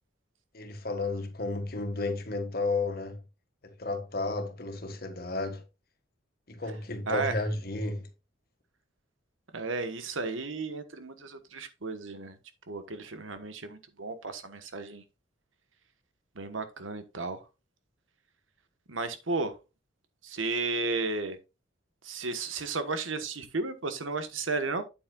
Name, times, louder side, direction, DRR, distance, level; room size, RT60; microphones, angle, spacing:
voice 1, 0.5-3.2 3.8-5.6 6.5-8.1, left 2 dB, 50° left, 1.8 m, -32 dB
voice 2, 7.1-7.4 9.5-12.4 12.7-15.0 16.3-17.4 18.9-19.6 20.2-21.4 22.0-24.8, right 3 dB, 80° right, 1.3 m, -33 dB
8.7 x 8.2 x 2.4 m
head